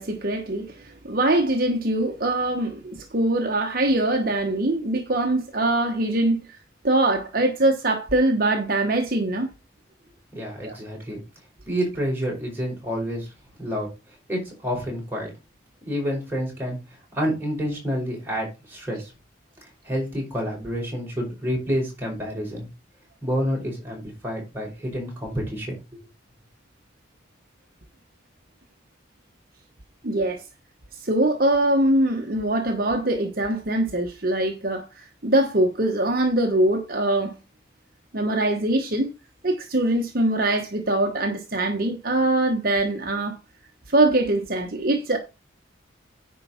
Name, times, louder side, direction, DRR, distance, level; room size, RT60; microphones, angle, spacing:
voice 1, 0.0-6.4 6.8-9.5 10.6-10.8 30.0-30.4 30.9-37.4 38.1-39.1 39.4-43.4 43.9-45.2, right 1 dB, 50° right, 1.1 m, -23 dB
voice 2, 10.3-11.2 11.7-13.3 13.6-13.9 14.3-15.3 15.8-16.8 17.1-19.1 19.8-22.7 23.2-25.8, equal, 10° right, 5.1 m, -28 dB
9.8 x 4.7 x 5.6 m
head